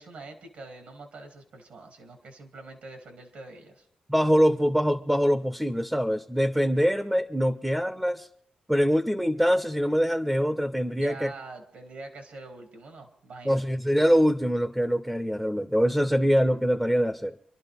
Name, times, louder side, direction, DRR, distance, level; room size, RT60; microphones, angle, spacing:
voice 1, 0.0-3.9 11.0-13.6, right 3 dB, 75° right, 3 dB, 2.5 m, -44 dB
voice 2, 4.1-8.3 8.7-11.3 13.5-17.3, equal, 5° right, 10 dB, 0.7 m, -24 dB
26.5 x 11.5 x 3.5 m, 0.65 s
cardioid pair, 105°, 3 cm